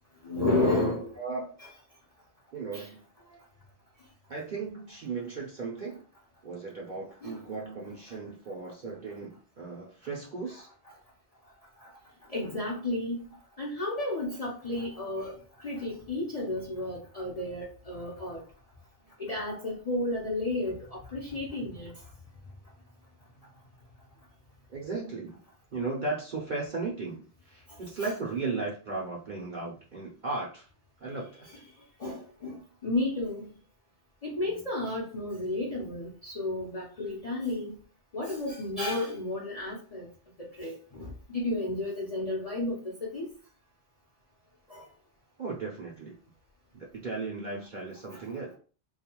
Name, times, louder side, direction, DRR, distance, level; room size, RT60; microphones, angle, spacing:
voice 1, 0.2-1.1 2.7-2.9 7.2-7.4 12.3-13.2 13.6-15.3 15.6-18.4 19.2-21.9 32.0-33.5 34.2-37.7 38.1-40.1 40.4-43.3 44.7-44.8 48.1-48.2, left 2 dB, 45° left, 0.5 m, -32 dB
voice 2, 1.2-1.5 2.5-3.0 4.3-6.0 6.4-10.7 24.7-25.4 25.7-30.7 31.0-31.5 45.4-46.2 46.7-48.6, right 3 dB, 55° right, 0.6 m, -36 dB
2.4 x 2.2 x 2.8 m
omnidirectional pair, 1.3 m